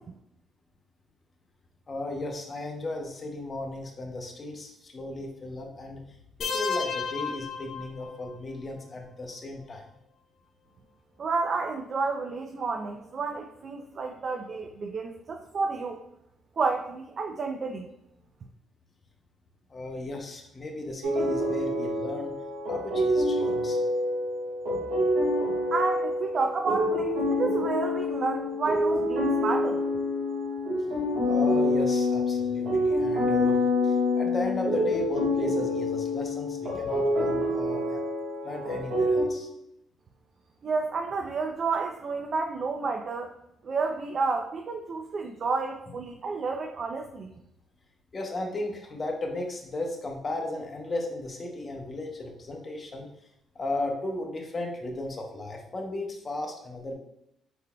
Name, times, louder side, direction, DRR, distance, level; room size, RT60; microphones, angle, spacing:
voice 1, 1.9-6.0 6.4-9.9 19.7-22.3 22.7-23.8 31.3-33.6 33.8-38.0 38.4-39.5 48.1-53.1 53.5-56.9, left 2 dB, 35° left, 2 dB, 0.7 m, -35 dB
sound 1, 6.4-8.4, left 5 dB, 60° left, 0.3 m, -32 dB
voice 2, 11.2-16.0 16.6-17.9 25.7-29.8 40.6-43.3 43.6-47.3, right 4 dB, 50° right, 3 dB, 0.3 m, -30 dB
sound 2, 21.0-39.2, left 1 dB, 80° right, 1.3 m, -27 dB
3.8 x 3.3 x 2.2 m, 0.78 s
cardioid pair, 90°, 0 cm